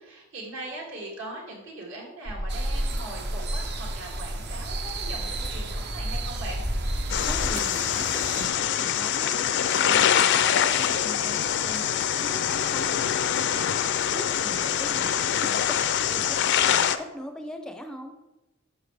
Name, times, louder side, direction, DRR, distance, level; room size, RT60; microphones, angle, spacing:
voice 1, 0.0-6.6 14.5-15.0, right 1 dB, 70° right, -2 dB, 2.6 m, -40 dB
sound 1, 2.3-7.5, equal, 40° right, 1.0 m, -31 dB
sound 2, 2.5-8.5, right 5 dB, 55° right, 0.8 m, -37 dB
sound 3, 7.1-17.0, left 9 dB, 60° left, 0.4 m, -24 dB
voice 2, 7.2-9.3 9.7-11.9 12.2-13.1 13.6-18.2, equal, 5° left, 5 dB, 0.5 m, -41 dB
10.0 x 6.4 x 3.4 m, 0.99 s
head